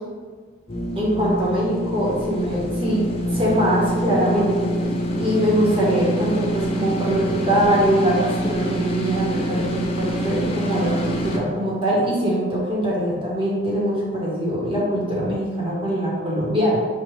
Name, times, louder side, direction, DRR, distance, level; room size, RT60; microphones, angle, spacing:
sound 1, 0.7-11.4, right 1 dB, 30° left, 0.5 m, -26 dB
voice 1, 0.9-3.0 3.3-4.7 5.1-16.8, equal, 30° right, -5 dB, 1.2 m, -22 dB
6.0 x 2.4 x 3.2 m, 1.5 s
head